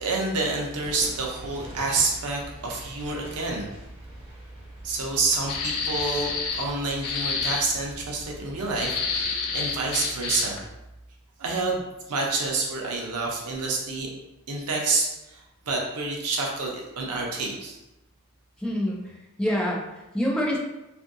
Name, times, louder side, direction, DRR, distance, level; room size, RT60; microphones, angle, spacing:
voice 1, 0.0-3.7 4.8-10.6 11.4-14.1 14.5-17.8, right 3 dB, 85° right, -1 dB, 0.6 m, -28 dB
sound 1, 0.8-9.3, equal, 25° right, 0.8 m, -46 dB
sound 2, 5.5-6.7 7.0-7.6 8.7-10.6, left 5 dB, 75° left, 0.4 m, -28 dB
voice 2, 18.6-20.6, equal, 5° left, -3 dB, 0.3 m, -27 dB
2.6 x 2.5 x 2.5 m, 0.96 s
head